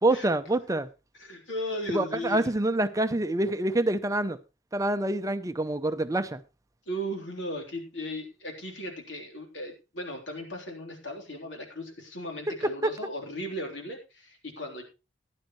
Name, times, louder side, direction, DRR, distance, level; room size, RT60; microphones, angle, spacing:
voice 1, 0.0-0.9 1.9-4.4 4.7-6.4 12.8-12.9, right 1 dB, 20° right, 0.6 m, -26 dB
voice 2, 1.2-2.5 6.9-14.8, equal, 75° left, 3.6 m, -36 dB
15.0 x 11.0 x 3.1 m
head